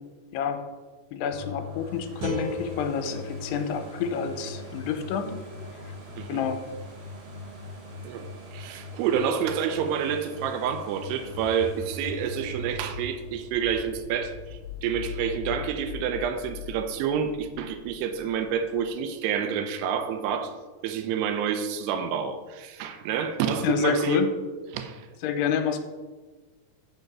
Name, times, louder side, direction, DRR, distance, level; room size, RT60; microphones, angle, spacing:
voice 1, 1.1-5.3 6.3-6.6 23.6-24.3 25.2-25.8, left 6 dB, 90° left, 7 dB, 2.7 m, -28 dB
sound 1, 1.3-15.0 15.5-15.6, left 2 dB, 50° right, 2.1 m, -42 dB
sound 2, 2.2-5.3, right 1 dB, 65° right, 1.5 m, -38 dB
voice 2, 8.0-20.5 20.8-24.2 24.7-25.1, right 7 dB, 85° right, 8 dB, 2.7 m, -28 dB
sound 3, 10.8-18.9, left 4 dB, 65° left, 1.7 m, -40 dB
6.3 x 5.2 x 6.1 m, 1.3 s
omnidirectional pair, 4.8 m